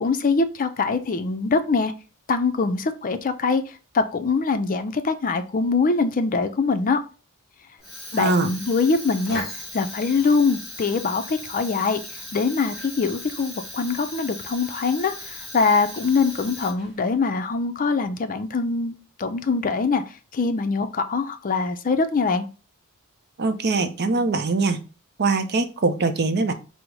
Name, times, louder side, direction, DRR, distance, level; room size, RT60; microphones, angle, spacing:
voice 1, 0.0-1.9 2.3-3.6 3.9-7.0 8.1-9.5 9.7-12.0 12.3-20.0 20.3-22.5, left 4 dB, 40° left, 9 dB, 0.5 m, -23 dB
Fire, 7.8-17.1, left 1 dB, ahead, 2.2 m, -38 dB
voice 2, 8.1-8.5 23.4-24.8 25.2-26.5, right 3 dB, 50° right, 8 dB, 0.6 m, -22 dB
5.1 x 2.1 x 4.5 m, 0.33 s
head